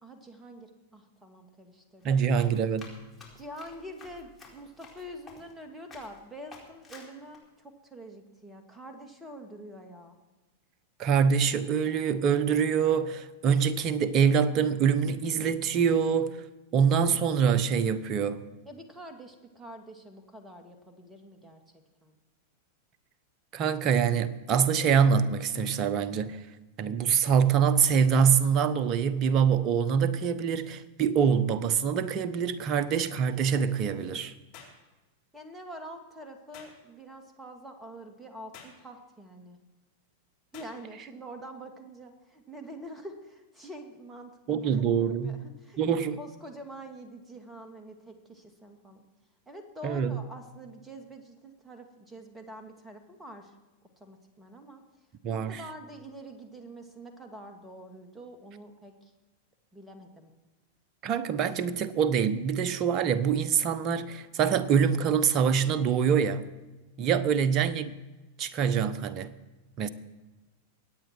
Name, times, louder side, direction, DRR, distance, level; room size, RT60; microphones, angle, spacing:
voice 1, 0.0-2.2 3.4-10.2 18.7-21.6 22.0-22.2 35.3-39.6 40.5-44.8 45.2-49.1 49.5-53.5 54.0-54.8 55.3-59.1 59.7-60.3, right 1 dB, 10° right, 2.3 m, -46 dB
Run, 2.0-5.6 5.9-6.2 6.5-7.4, left 3 dB, 10° left, 4.2 m, -51 dB
voice 2, 2.0-2.9 11.0-16.4 16.7-18.4 23.5-26.4 26.8-34.3 44.5-45.4 45.8-46.2 49.8-50.2 55.2-55.6 61.0-66.4 67.0-67.9 68.4-69.3 69.8-69.9, right 7 dB, 40° right, 1.0 m, -25 dB
sound 1, 34.5-34.8 36.5-36.8 38.5-38.8 40.5-40.8, left 7 dB, 50° left, 4.0 m, -49 dB
23.5 x 9.2 x 4.6 m
figure-of-eight pair, 95°, 0 cm